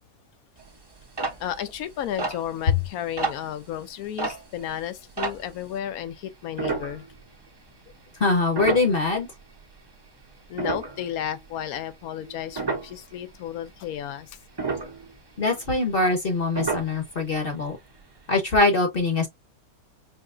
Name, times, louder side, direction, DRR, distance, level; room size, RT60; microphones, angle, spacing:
sound 1, 0.6-5.8 6.5-7.5 7.9-8.0 8.5-9.8 10.2-13.1 13.5-14.0 14.3-16.3 16.5-17.3 17.7-17.8 18.0-18.2 18.6-18.7, right 3 dB, 30° right, 0.5 m, -32 dB
voice 1, 1.4-7.0 10.5-14.3, left 10 dB, 70° left, 1.1 m, -33 dB
voice 2, 8.2-9.3 15.4-17.8 18.3-19.3, left 3 dB, 40° left, 0.9 m, -23 dB
4.8 x 2.8 x 2.5 m
omnidirectional pair, 1.7 m